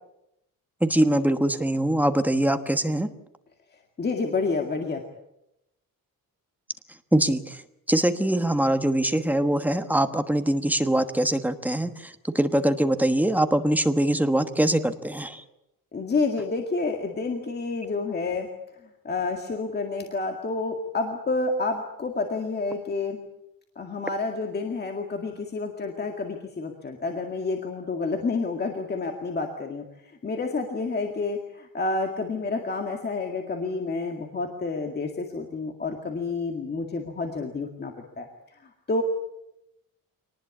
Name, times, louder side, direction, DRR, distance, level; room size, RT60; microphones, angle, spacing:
voice 1, 0.8-3.1 7.1-7.6 7.9-15.4, right 1 dB, 5° right, 8 dB, 1.2 m, -23 dB
voice 2, 4.0-5.0 15.9-18.5 19.0-23.2 23.8-38.3 38.9-39.0, left 3 dB, 30° left, 3 dB, 2.1 m, -29 dB
25.0 x 19.5 x 8.4 m, 0.84 s
wide cardioid pair, 170°, 34 cm